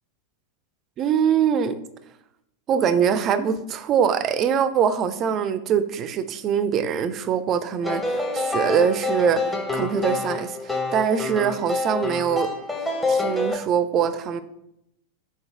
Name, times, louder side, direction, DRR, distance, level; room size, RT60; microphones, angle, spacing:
voice 1, 1.0-1.8 2.7-12.5 13.1-14.4, right 8 dB, 30° right, 12 dB, 0.3 m, -23 dB
sound 1, 7.8-13.6, left 3 dB, 10° left, 0.6 m, -27 dB
4.1 x 3.8 x 3.3 m, 0.79 s
figure-of-eight pair, 90°, 0 cm